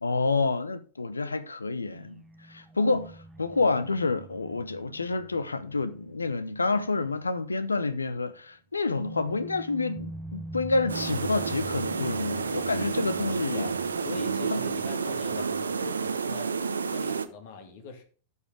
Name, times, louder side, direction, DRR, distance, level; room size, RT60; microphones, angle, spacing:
voice 1, 0.0-2.2 2.5-13.7 14.5-14.6 15.4-15.5, left 3 dB, 85° left, 0.7 m, -28 dB
sound 1, 1.9-7.4 7.7-7.8 9.0-15.5, right 2 dB, 15° right, 1.1 m, -44 dB
sound 2, 10.9-17.3, right 5 dB, 75° right, 0.7 m, -30 dB
voice 2, 13.5-18.0, left 3 dB, 55° left, 1.9 m, -42 dB
14.0 x 5.6 x 3.6 m
figure-of-eight pair, 95°, 0 cm